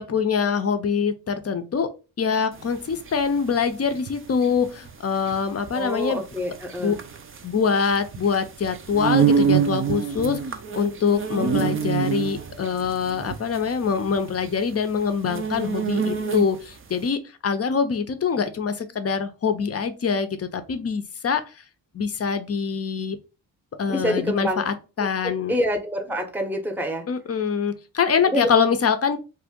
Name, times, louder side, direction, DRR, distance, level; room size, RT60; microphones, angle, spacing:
voice 1, 0.0-1.9 2.2-6.2 6.8-7.0 7.4-10.4 10.7-21.4 21.9-23.2 23.8-25.5 27.1-29.2, left 6 dB, 35° left, 10 dB, 0.6 m, -24 dB
sound 1, 2.6-16.8, right 7 dB, 30° right, 0.4 m, -26 dB
voice 2, 5.7-7.0 23.9-24.6 25.0-27.1 28.2-28.5, equal, 5° right, 5 dB, 0.8 m, -27 dB
2.5 x 2.1 x 3.6 m, 0.32 s
supercardioid pair, 45°, 45 cm